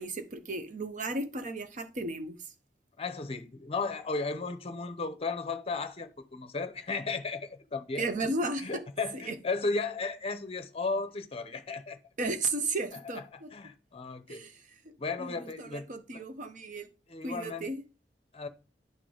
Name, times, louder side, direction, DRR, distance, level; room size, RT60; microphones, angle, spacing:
voice 1, 0.0-2.4 8.0-8.8 9.1-9.4 12.2-13.5 14.3-14.6 15.2-16.9 17.2-17.8, right 2 dB, 45° right, 0.8 m, -34 dB
voice 2, 3.0-8.3 8.6-12.0 13.1-14.4 15.0-15.8 16.1-16.2 17.1-17.7 18.3-18.5, left 3 dB, 35° left, 0.7 m, -35 dB
10.5 x 3.9 x 3.3 m
head